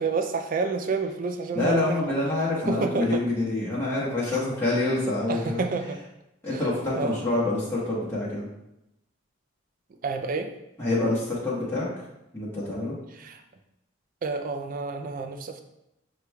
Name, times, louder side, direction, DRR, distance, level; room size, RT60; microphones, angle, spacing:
voice 1, 0.0-3.2 5.3-6.0 6.5-6.6 6.9-7.2 10.0-10.5 13.1-13.4 14.2-15.6, right 4 dB, 40° right, 6 dB, 0.3 m, -29 dB
voice 2, 1.5-5.6 6.4-8.5 10.8-11.9 12.3-13.0, left 2 dB, 10° left, -9 dB, 1.1 m, -26 dB
6.6 x 3.1 x 2.3 m, 0.88 s
head